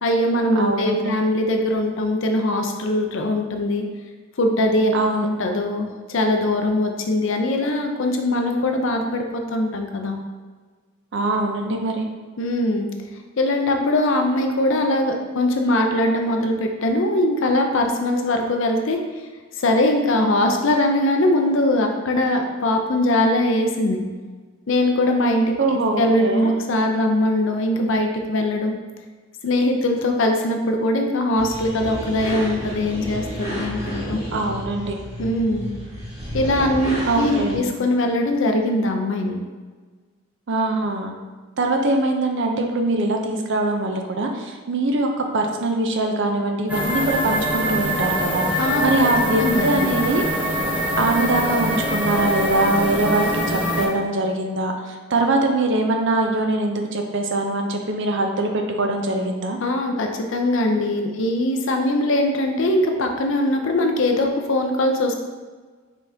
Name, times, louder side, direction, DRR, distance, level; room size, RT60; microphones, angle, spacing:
voice 1, 0.0-3.8 4.4-4.9 5.2-10.2 12.4-12.9 13.4-19.0 19.6-24.0 24.7-25.4 26.0-28.7 29.4-34.2 35.2-35.7 36.3-39.4 48.6-49.1 49.4-49.7 59.6-65.2, left 1 dB, 65° left, 3 dB, 0.6 m, -21 dB
voice 2, 0.5-1.2 4.9-5.3 11.1-12.1 25.6-26.5 34.3-34.9 37.1-37.7 40.5-41.1 41.6-50.3 51.0-59.6, right 2 dB, 60° right, 3 dB, 0.5 m, -22 dB
sound 1, 31.4-37.6, equal, 30° right, 1.4 m, -31 dB
sound 2, 46.7-53.9, equal, 5° right, 0.7 m, -24 dB
5.3 x 3.5 x 2.7 m, 1.4 s
head